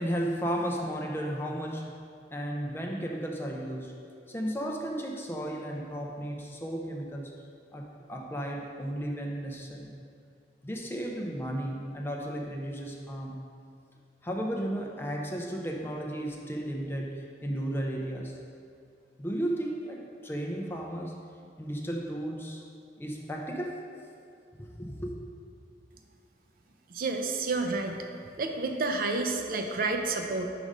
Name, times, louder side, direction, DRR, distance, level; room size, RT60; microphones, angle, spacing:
voice 1, 0.0-1.9 2.3-3.9 4.3-7.3 7.7-9.9 10.6-13.4 14.2-18.3 19.2-21.2 21.6-22.6 23.0-23.8 24.6-25.1, right 1 dB, 10° left, 0 dB, 0.5 m, -34 dB
voice 2, 26.9-28.0 28.4-30.5, right 3 dB, 50° right, 4 dB, 0.5 m, -30 dB
5.0 x 4.9 x 5.3 m, 2.4 s
head